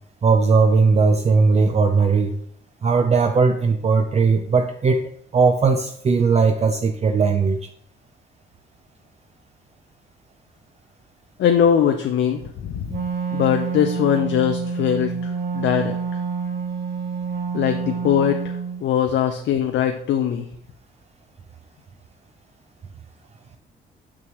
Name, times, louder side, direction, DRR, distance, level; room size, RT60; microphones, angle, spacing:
voice 1, 0.2-2.3 2.8-5.0 5.3-7.6, right 4 dB, 35° right, 5 dB, 0.5 m, -18 dB
voice 2, 11.4-12.9 13.3-16.0 17.5-20.5, left 9 dB, 65° left, 5 dB, 0.6 m, -21 dB
Wind instrument woodwind instrument, 12.9-18.8, right 5 dB, 50° right, 1.1 m, -27 dB
6.1 x 6.1 x 3.1 m, 0.67 s
cardioid pair, 90°, 20 cm